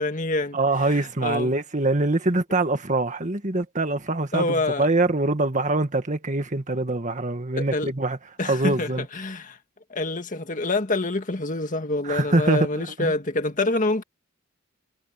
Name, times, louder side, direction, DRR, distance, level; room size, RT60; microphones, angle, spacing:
voice 1, 0.0-1.5 4.3-4.9 7.6-7.9 8.4-9.6 9.9-14.0, left 2 dB, 40° left, 1.8 m, -26 dB
voice 2, 0.5-4.5 4.8-8.2 8.4-9.0 12.1-13.1, right 2 dB, 40° right, 1.9 m, -24 dB
head